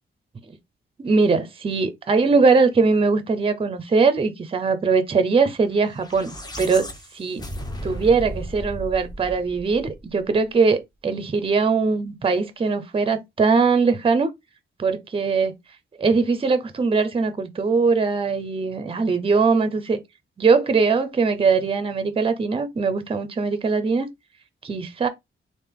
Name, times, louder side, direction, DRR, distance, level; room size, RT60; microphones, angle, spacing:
voice 1, 1.0-6.9 7.1-7.4 7.8-14.3 14.8-15.5 16.0-20.0 20.4-24.1 24.6-25.1, right 4 dB, 25° right, 0.5 m, -21 dB
sound 1, 5.9-10.3, equal, 20° left, 0.6 m, -35 dB
3.4 x 2.5 x 3.5 m
wide cardioid pair, 145°, 21 cm